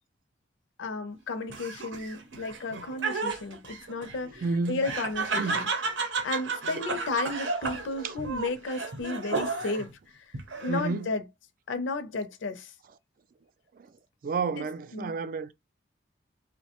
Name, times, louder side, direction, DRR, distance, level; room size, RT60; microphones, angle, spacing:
voice 1, 0.8-5.7 6.2-11.3 11.7-12.7 14.5-14.7 14.9-15.1, left 3 dB, 80° left, 0.5 m, -33 dB
Laughter, 1.5-9.9 10.3-11.0, right 4 dB, 80° right, 0.7 m, -33 dB
voice 2, 4.4-4.8 5.3-5.7 10.7-11.1 14.2-15.5, right 4 dB, 45° right, 0.3 m, -30 dB
3.0 x 2.1 x 2.8 m
head